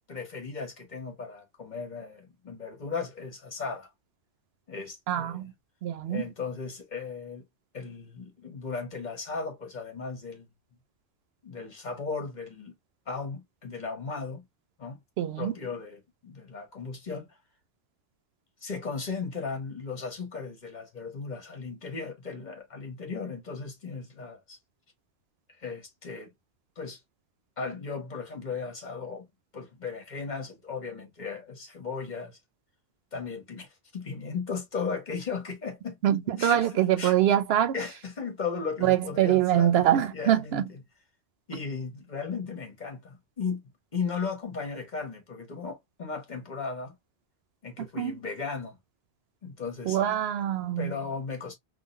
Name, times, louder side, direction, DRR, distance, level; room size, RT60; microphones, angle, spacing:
voice 1, 0.1-3.9 4.7-5.4 6.1-7.4 7.7-10.5 11.4-12.7 13.1-14.4 14.8-15.0 15.4-17.4 18.6-24.6 25.6-26.3 26.8-27.0 27.6-29.3 29.5-32.4 33.1-36.0 36.4-36.7 37.0-37.2 37.7-40.8 41.5-43.6 43.9-46.9 47.6-48.8 49.4-50.2 50.8-51.6, left 5 dB, 45° left, 1.3 m, -36 dB
voice 2, 5.1-5.5 5.8-6.3 15.2-15.5 36.0-37.8 38.8-40.6 47.8-48.2 49.9-50.9, right 11 dB, 75° right, 0.8 m, -24 dB
3.7 x 2.3 x 2.5 m
omnidirectional pair, 1.1 m